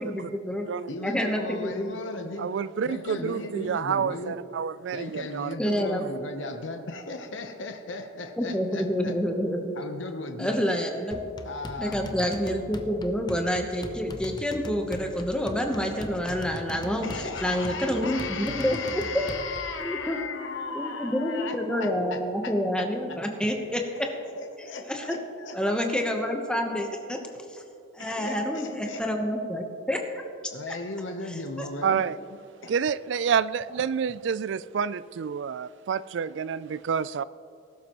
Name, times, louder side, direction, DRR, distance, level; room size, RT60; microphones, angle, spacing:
voice 1, 0.0-0.7 1.0-2.0 3.1-3.3 5.6-6.0 8.4-9.7 10.4-11.2 11.8-19.0 19.8-20.2 20.7-24.1 24.9-25.2 25.5-27.2 27.5-27.6 27.9-30.0 30.7-30.8 31.6-31.7, equal, 5° left, 2 dB, 1.0 m, -28 dB
voice 2, 0.9-2.6 2.8-4.4 4.9-9.1 9.8-10.6 11.4-12.0 17.0-22.9 24.1-25.6 28.0-29.3 30.5-32.0 32.6-32.7, left 3 dB, 70° left, 5 dB, 0.9 m, -36 dB
voice 3, 2.4-5.5 6.0-6.1 31.8-32.2 32.7-37.2, right 7 dB, 60° right, 18 dB, 0.3 m, -28 dB
sound 1, 11.1-19.8, left 1 dB, 20° left, 0.6 m, -41 dB
19.5 x 12.0 x 3.0 m, 2.5 s
head